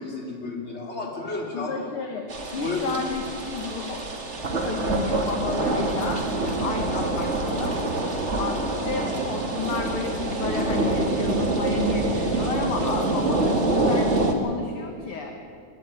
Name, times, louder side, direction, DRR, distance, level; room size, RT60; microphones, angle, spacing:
voice 1, 0.0-1.9 2.6-3.0, left 3 dB, 20° left, 0 dB, 3.6 m, -31 dB
voice 2, 1.5-2.2 2.5-4.1 4.6-6.3 6.6-7.8 8.4-15.4, left 5 dB, 55° left, 4 dB, 2.1 m, -32 dB
sound 1, 2.3-14.3, right 2 dB, 25° right, 1.9 m, -25 dB
21.0 x 13.5 x 9.8 m, 2.5 s
omnidirectional pair, 3.3 m